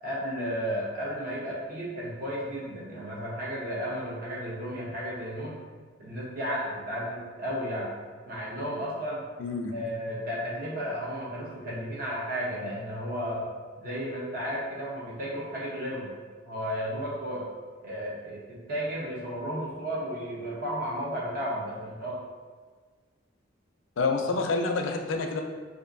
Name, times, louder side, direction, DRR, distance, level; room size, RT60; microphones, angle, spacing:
voice 1, 0.0-5.6 6.0-7.9 8.3-9.2 9.7-13.5 13.8-16.1 16.4-17.4 17.8-22.2, equal, 50° right, -5 dB, 0.9 m, -33 dB
voice 2, 9.4-9.8 24.0-25.4, left 3 dB, 80° left, 3 dB, 0.4 m, -28 dB
4.3 x 2.5 x 2.6 m, 1.5 s
head